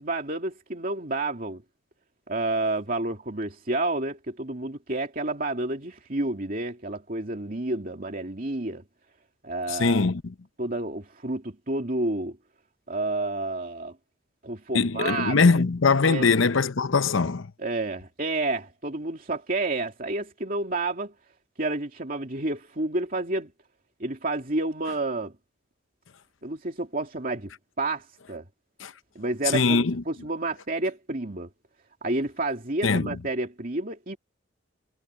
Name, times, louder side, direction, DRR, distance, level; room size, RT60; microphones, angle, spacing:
voice 1, 0.0-1.6 2.3-8.8 9.4-10.0 10.6-12.4 12.9-13.9 14.4-15.5 16.0-16.3 17.6-21.1 21.6-23.5 24.0-25.4 26.4-27.5 27.8-28.4 29.1-31.5 32.0-34.2, right 2 dB, 45° right, 2.7 m, -30 dB
voice 2, 9.7-10.3 14.7-17.5 28.8-28.9 29.5-30.0 32.8-33.2, left 4 dB, 75° left, 0.8 m, -22 dB
head